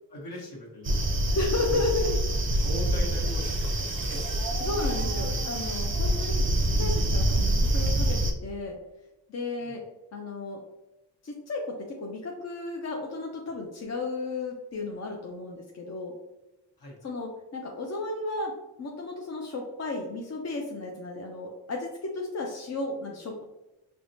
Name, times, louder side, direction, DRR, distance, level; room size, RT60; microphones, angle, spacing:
voice 1, 0.1-1.1 1.6-2.1 2.6-4.4 9.6-9.8 16.8-17.1, equal, 60° left, -2 dB, 1.3 m, -40 dB
sound 1, 0.8-8.3, right 1 dB, 30° right, 0.5 m, -26 dB
voice 2, 1.3-2.1 4.6-8.8 9.3-9.8 10.1-10.6 11.2-16.1 17.0-23.4, left 3 dB, 40° left, 0 dB, 0.6 m, -33 dB
4.6 x 2.2 x 2.7 m, 0.97 s
cardioid pair, 75°, 43 cm